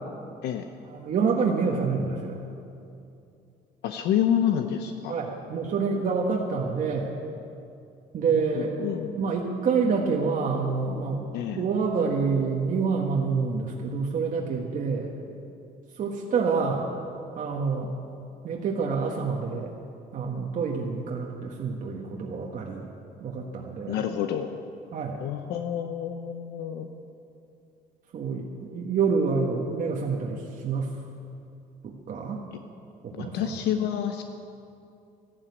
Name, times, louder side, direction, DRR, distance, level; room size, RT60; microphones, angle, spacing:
voice 1, 0.9-2.4 5.1-7.1 8.1-8.7 9.2-11.3 11.6-15.1 15.9-16.9 17.3-17.9 18.4-19.7 20.1-22.9 23.2-24.0 24.9-25.2 28.1-30.9 31.8-32.4 33.0-33.6, right 5 dB, 50° right, -1 dB, 1.6 m, -27 dB
voice 2, 3.8-5.1 8.5-9.1 11.3-11.6 23.9-24.5 25.2-26.9 33.1-34.2, left 9 dB, 80° left, 6 dB, 0.8 m, -28 dB
13.5 x 12.0 x 8.3 m, 2.6 s
cardioid pair, 110°, 17 cm